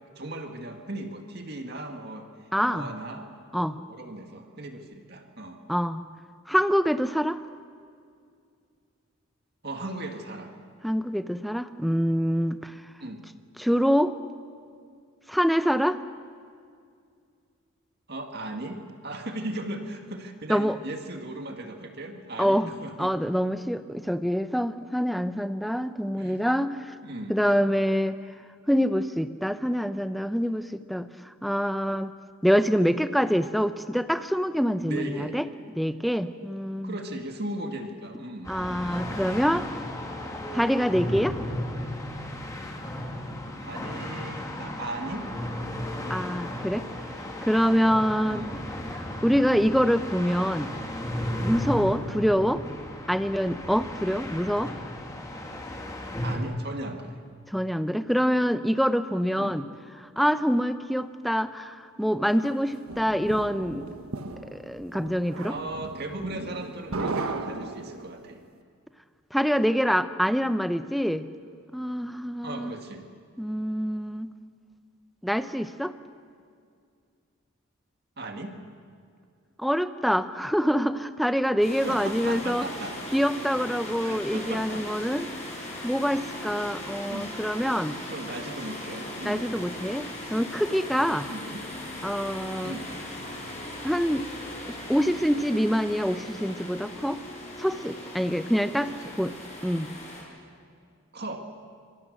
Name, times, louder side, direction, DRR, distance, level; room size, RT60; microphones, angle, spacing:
voice 1, 0.2-2.3 2.6-3.3 3.7-5.6 9.6-10.5 13.0-13.2 18.1-23.1 26.2-26.4 27.0-27.4 34.8-35.4 36.8-38.5 43.6-45.3 48.3-48.6 56.2-57.2 59.3-59.6 65.5-68.4 72.4-73.1 78.2-78.6 81.8-83.0 83.6-84.9 87.1-87.3 88.1-89.5 91.3-91.6 92.6-92.9 98.8-99.1 99.4-99.5 101.1-101.4, right 1 dB, 50° right, 4 dB, 2.1 m, -37 dB
voice 2, 2.5-2.9 3.5-3.8 5.7-6.0 6.5-7.4 10.8-12.7 13.6-14.1 15.3-16.0 20.5-20.8 22.4-22.7 23.0-26.9 27.3-28.2 28.7-32.1 32.4-35.4 35.8-37.0 38.5-39.6 40.5-41.3 46.1-46.9 47.4-48.5 49.2-50.7 51.4-52.6 53.1-54.7 57.5-59.7 60.0-63.9 64.5-65.6 69.3-71.2 71.7-72.7 73.4-74.3 75.2-75.9 79.6-82.7 83.1-85.3 85.8-88.0 89.2-90.0 90.3-91.3 92.0-92.7 93.8-94.3 94.7-97.2 97.6-98.9 99.2-99.3 99.6-99.9, equal, ahead, 10 dB, 0.7 m, -25 dB
sound 1, 38.4-56.4, left 1 dB, 15° left, 2.5 m, -35 dB
sound 2, 62.4-68.3, right 3 dB, 90° right, 1.3 m, -36 dB
sound 3, 81.6-100.2, left 1 dB, 30° left, 7.4 m, -38 dB
25.5 x 24.0 x 6.6 m, 2.2 s
head